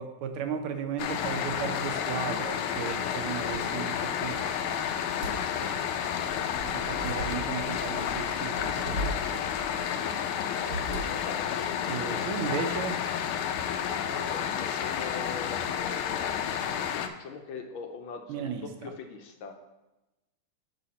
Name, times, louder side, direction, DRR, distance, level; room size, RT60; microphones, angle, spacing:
voice 1, 0.0-4.7 5.6-5.8 6.6-9.4 11.9-13.0 18.3-18.7, right 7 dB, 80° right, 6 dB, 1.6 m, -35 dB
sound 1, 1.0-17.1, left 8 dB, 90° left, 1.5 m, -31 dB
sound 2, 4.3-5.8 6.2-11.5, right 1 dB, 50° right, 1.5 m, -39 dB
sound 3, 6.5-11.4 11.8-12.0, left 1 dB, 30° right, 1.5 m, -47 dB
voice 2, 10.9-12.3 14.0-16.4 16.9-19.6, left 5 dB, 75° left, 5 dB, 1.4 m, -42 dB
6.7 x 5.6 x 4.2 m, 1.0 s
omnidirectional pair, 2.4 m